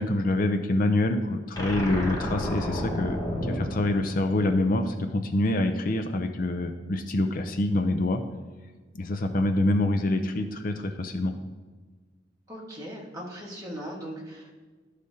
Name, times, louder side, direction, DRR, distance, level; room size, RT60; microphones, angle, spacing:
voice 1, 0.0-3.2 3.4-8.2 8.9-11.3, left 2 dB, 50° left, 7 dB, 0.5 m, -26 dB
sound 1, 1.5-4.9, left 1 dB, 20° left, 1.1 m, -32 dB
voice 2, 12.5-14.5, equal, 20° right, -4 dB, 1.6 m, -39 dB
12.5 x 4.9 x 2.8 m, 1.4 s
head